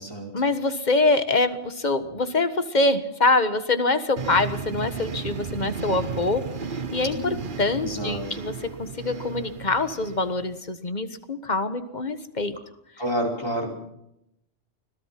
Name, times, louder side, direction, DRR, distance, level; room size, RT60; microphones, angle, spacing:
voice 1, 0.3-6.4 6.9-12.6, left 3 dB, 40° left, 10 dB, 1.6 m, -24 dB
sound 1, 4.2-10.6, right 5 dB, 50° right, 1.1 m, -34 dB
voice 2, 7.1-7.5 7.8-8.2 13.0-13.7, right 1 dB, 20° left, 0 dB, 4.9 m, -29 dB
25.5 x 17.5 x 5.9 m, 0.79 s
omnidirectional pair, 1.2 m